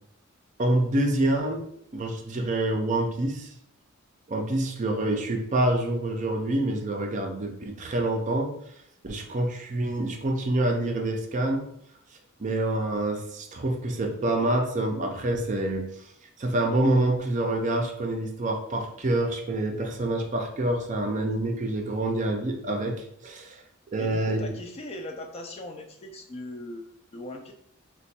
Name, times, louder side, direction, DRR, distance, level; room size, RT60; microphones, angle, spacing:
voice 1, 0.6-1.6 1.9-3.5 4.3-8.5 9.0-11.7 12.4-15.9 16.4-23.6 23.9-24.4, right 1 dB, 35° right, 2 dB, 0.5 m, -27 dB
voice 2, 24.0-27.5, left 1 dB, 30° left, 4 dB, 0.3 m, -39 dB
3.0 x 2.2 x 4.1 m, 0.73 s
head